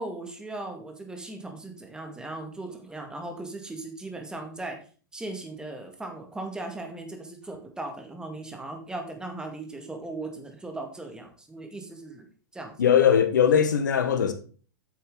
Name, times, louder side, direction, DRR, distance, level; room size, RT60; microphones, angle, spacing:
voice 1, 0.0-4.8 5.1-12.3 12.5-12.7, right 2 dB, 10° right, 2.1 m, -38 dB
voice 2, 12.8-14.3, left 8 dB, 80° left, 1.3 m, -20 dB
9.1 x 6.7 x 3.9 m
hypercardioid pair, 105°, 10 cm